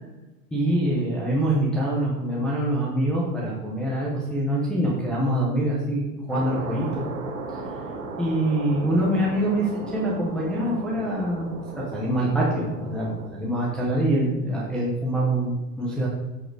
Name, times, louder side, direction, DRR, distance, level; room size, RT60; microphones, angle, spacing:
voice 1, 0.5-7.0 8.2-11.5 11.9-16.1, right 1 dB, ahead, -6 dB, 0.4 m, -25 dB
sound 1, 6.3-13.3, right 3 dB, 35° right, 3.0 m, -36 dB
10.0 x 6.4 x 4.5 m, 1.1 s
supercardioid pair, 155°, 49 cm